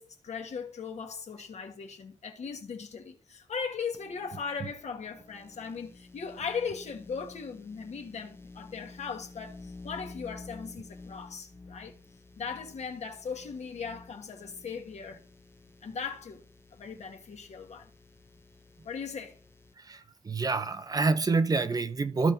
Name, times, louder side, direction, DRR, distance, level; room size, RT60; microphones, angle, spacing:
voice 1, 0.0-11.9 12.4-15.2 15.8-16.4 16.7-17.9 18.8-19.4, left 5 dB, 70° left, 1.4 m, -38 dB
sound 1, 3.9-19.7, left 3 dB, 20° left, 0.5 m, -51 dB
voice 2, 19.8-22.3, right 3 dB, 30° right, 0.5 m, -27 dB
14.5 x 5.2 x 2.7 m
wide cardioid pair, 145°, 12 cm